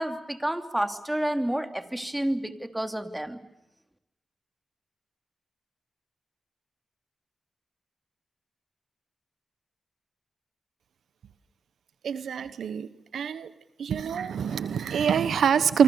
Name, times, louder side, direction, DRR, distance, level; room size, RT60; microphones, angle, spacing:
voice 1, 0.0-3.4, right 1 dB, 10° right, 8 dB, 2.7 m, -29 dB
voice 2, 12.0-12.9 13.1-13.5 13.8-15.8, right 7 dB, 85° right, 14 dB, 1.1 m, -25 dB
27.5 x 24.5 x 7.0 m, 0.92 s
cardioid pair, 55°, 0 cm